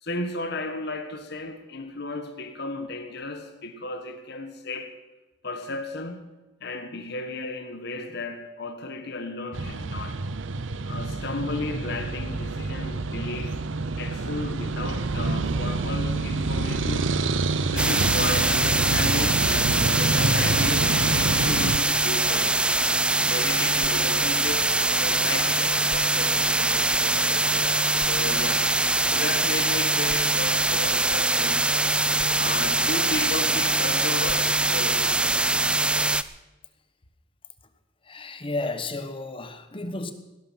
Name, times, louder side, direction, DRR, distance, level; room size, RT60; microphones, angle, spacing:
voice 1, 0.0-4.9 5.4-6.3 6.6-10.2 10.9-13.6 14.0-17.1 17.7-22.6 22.9-31.6 32.3-35.2, left 2 dB, 60° left, 1.4 m, -35 dB
sound 1, 9.5-21.8, right 3 dB, 85° right, 0.8 m, -27 dB
sound 2, 17.8-36.2, right 2 dB, 5° right, 0.4 m, -23 dB
voice 2, 38.0-40.1, left 2 dB, 30° left, 1.2 m, -32 dB
18.0 x 12.0 x 5.8 m
head